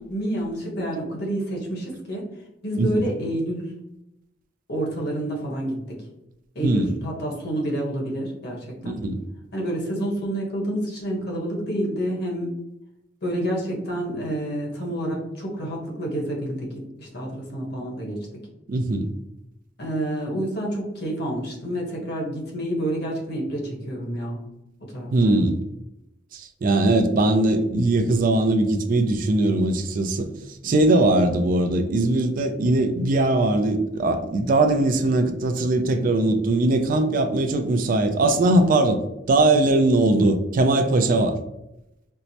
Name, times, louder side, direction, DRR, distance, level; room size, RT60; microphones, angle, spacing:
voice 1, 0.0-2.3 2.6-3.7 4.7-6.0 6.5-9.0 9.5-12.5 13.2-18.2 19.8-24.4 24.8-25.4 30.6-31.0, right 1 dB, 60° left, -1 dB, 1.0 m, -29 dB
voice 2, 8.8-9.2 18.7-19.1 25.1-25.6 26.3-30.3 30.6-39.0 39.3-41.4, right 2 dB, 50° right, 7 dB, 0.4 m, -20 dB
4.5 x 2.0 x 2.7 m, 0.87 s
head